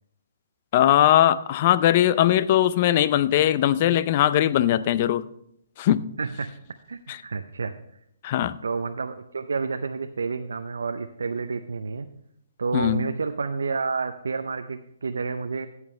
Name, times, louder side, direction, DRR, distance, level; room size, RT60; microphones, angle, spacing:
voice 1, 0.7-5.3 5.8-6.1 7.1-7.2 8.2-8.6 12.7-13.0, left 12 dB, 40° left, 16 dB, 0.5 m, -20 dB
voice 2, 6.2-6.5 6.9-7.7 8.6-12.1 12.6-15.7, right 4 dB, 75° right, 7 dB, 0.6 m, -29 dB
14.0 x 8.2 x 3.2 m, 0.74 s
figure-of-eight pair, 135°, 0 cm